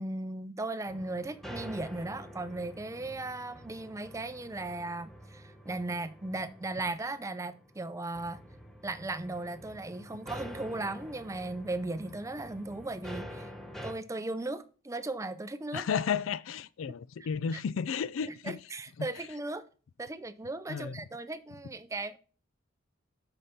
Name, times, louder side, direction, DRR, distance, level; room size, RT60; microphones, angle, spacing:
voice 1, 0.0-8.4 8.8-13.5 13.8-15.8 17.5-17.6 18.3-19.6 20.0-22.2, right 2 dB, 15° right, 0.5 m, -37 dB
sound 1, 0.9-13.9, equal, ahead, 0.8 m, -47 dB
voice 2, 15.7-18.6 19.0-19.1 20.7-21.0, left 6 dB, 75° left, 0.4 m, -33 dB
8.5 x 5.7 x 4.2 m
head